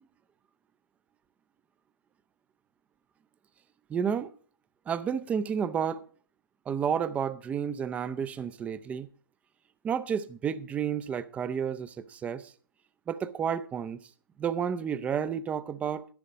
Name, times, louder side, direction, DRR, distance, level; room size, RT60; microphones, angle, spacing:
voice 1, 3.9-4.3 4.9-6.0 6.7-9.1 9.8-12.5 13.1-14.0 14.4-16.1, right 7 dB, 10° right, 0.5 m, -31 dB
11.5 x 10.5 x 4.9 m
figure-of-eight pair, 125°, 11 cm